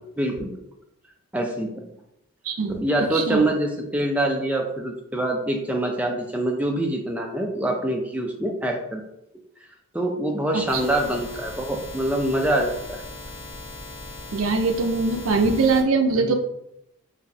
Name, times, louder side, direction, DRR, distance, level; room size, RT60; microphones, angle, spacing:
voice 1, 0.2-0.5 1.3-1.8 2.7-9.0 9.9-13.0 16.1-16.4, right 1 dB, 5° right, 1 dB, 0.4 m, -25 dB
voice 2, 2.5-3.5 10.5-10.8 14.3-16.4, right 4 dB, 75° right, 6 dB, 0.5 m, -22 dB
sound 1, 10.7-15.8, left 2 dB, 30° left, 0.6 m, -39 dB
4.1 x 3.2 x 2.7 m, 0.81 s
head